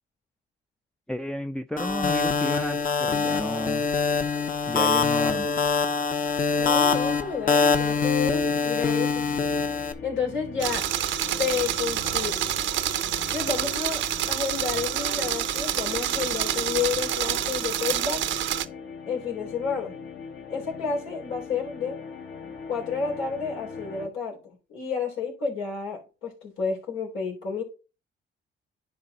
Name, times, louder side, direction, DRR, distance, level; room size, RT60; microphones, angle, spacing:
voice 1, 1.1-3.9 4.7-5.5, left 1 dB, 5° left, 0.4 m, -32 dB
sound 1, 1.8-9.9, left 5 dB, 45° left, 1.1 m, -24 dB
sound 2, 6.2-24.1, left 5 dB, 65° left, 1.9 m, -41 dB
voice 2, 6.6-9.2 10.0-10.8 11.4-12.6 13.3-14.0 14.3-18.2 19.1-19.9 20.5-22.0 22.7-27.6, left 6 dB, 85° left, 3.4 m, -30 dB
sound 3, 10.6-18.6, right 12 dB, 75° right, 0.6 m, -28 dB
10.5 x 4.0 x 4.2 m
cardioid pair, 90°, 20 cm